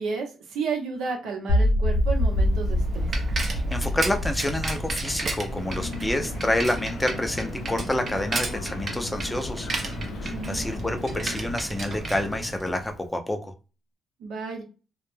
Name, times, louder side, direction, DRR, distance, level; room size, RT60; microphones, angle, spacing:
voice 1, 0.0-3.1 10.3-10.6 14.2-14.6, right 4 dB, 80° right, 3 dB, 0.7 m, -32 dB
sound 1, 1.5-7.6, left 1 dB, 65° left, 0.9 m, -26 dB
Bicycle, 2.1-13.0, right 2 dB, 45° right, 0.6 m, -33 dB
voice 2, 3.4-9.7 10.2-13.5, left 1 dB, 10° left, 6 dB, 0.5 m, -28 dB
sound 2, 5.5-11.6, left 5 dB, 85° left, 0.4 m, -39 dB
2.1 x 2.0 x 3.1 m, 0.32 s
cardioid pair, 90°, 0 cm